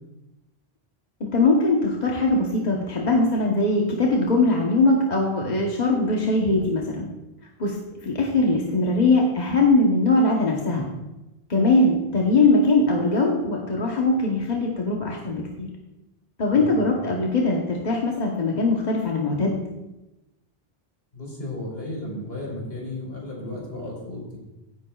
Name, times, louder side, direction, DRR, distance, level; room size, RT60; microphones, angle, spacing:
voice 1, 1.2-7.1 7.6-7.8 8.0-10.9 11.5-15.7 16.4-19.6, left 2 dB, 45° left, -1 dB, 1.2 m, -21 dB
voice 2, 21.1-24.2, left 1 dB, 70° left, -3 dB, 4.3 m, -34 dB
16.0 x 10.5 x 2.4 m, 0.98 s
omnidirectional pair, 1.0 m